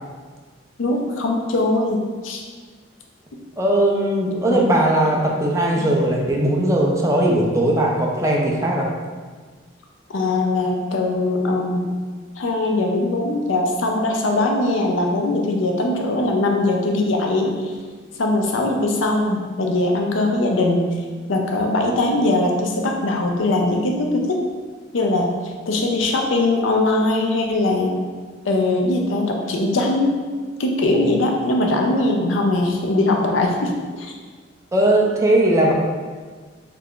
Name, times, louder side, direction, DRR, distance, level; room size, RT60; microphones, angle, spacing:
voice 1, 0.8-2.4 4.5-4.6 10.1-11.9 12.4-17.5 18.2-20.9 21.3-24.4 24.9-25.4 25.7-27.9 28.4-30.2 30.6-33.7 34.0-34.1, left 2 dB, 80° left, 2 dB, 0.5 m, -21 dB
voice 2, 3.6-8.9 30.9-31.1 34.7-35.7, right 1 dB, 15° right, -2 dB, 0.4 m, -19 dB
3.2 x 2.4 x 3.6 m, 1.5 s
head